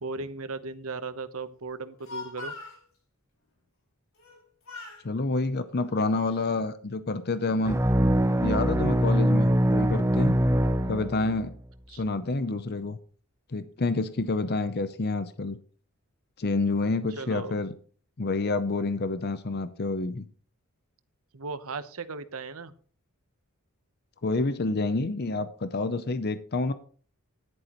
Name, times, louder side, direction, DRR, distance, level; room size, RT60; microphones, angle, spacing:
voice 1, 0.0-2.5 11.9-12.0 17.2-17.6 21.3-22.7, right 3 dB, 75° right, 12 dB, 1.0 m, -37 dB
Speech, 1.8-2.8 4.2-4.4 4.7-5.1 5.8-6.6, left 3 dB, 70° left, 4.7 m, -42 dB
voice 2, 5.0-7.8 8.4-10.4 10.8-11.5 11.9-13.0 13.5-15.6 16.4-17.7 18.2-20.3 24.2-26.7, left 3 dB, 45° left, 12 dB, 0.6 m, -28 dB
sound 1, 7.6-11.5, equal, 10° right, 0.5 m, -23 dB
14.0 x 11.0 x 3.0 m, 0.43 s
head